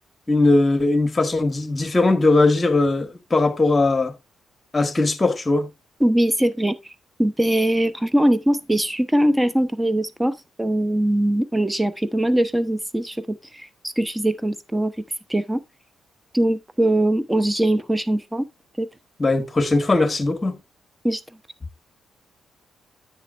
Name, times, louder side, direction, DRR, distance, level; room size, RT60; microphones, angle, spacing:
voice 1, 0.3-4.1 4.7-5.7 19.2-20.6, left 2 dB, 25° left, 1.8 m, -19 dB
voice 2, 6.0-6.9 7.2-14.9 15.3-15.6 16.3-18.5 18.8-18.9 21.0-21.2, right 1 dB, 10° right, 1.0 m, -21 dB
10.0 x 8.4 x 2.5 m
hypercardioid pair, 45°, 0 cm